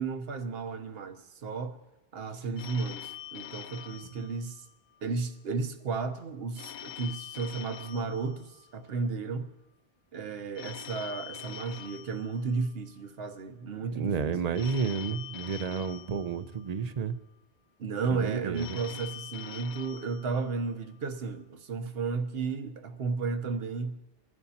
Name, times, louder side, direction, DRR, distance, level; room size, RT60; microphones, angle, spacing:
voice 1, 0.0-1.8 2.1-4.6 5.0-9.5 10.1-14.4 17.8-24.0, right 4 dB, 70° right, 1.1 m, -33 dB
Telephone, 2.6-5.1 6.6-9.0 10.6-13.0 14.5-17.0 18.5-21.0, left 11 dB, 55° left, 0.6 m, -45 dB
voice 2, 13.9-17.2 18.1-18.8, right 6 dB, 45° right, 0.7 m, -31 dB
22.5 x 11.0 x 2.8 m
omnidirectional pair, 1.1 m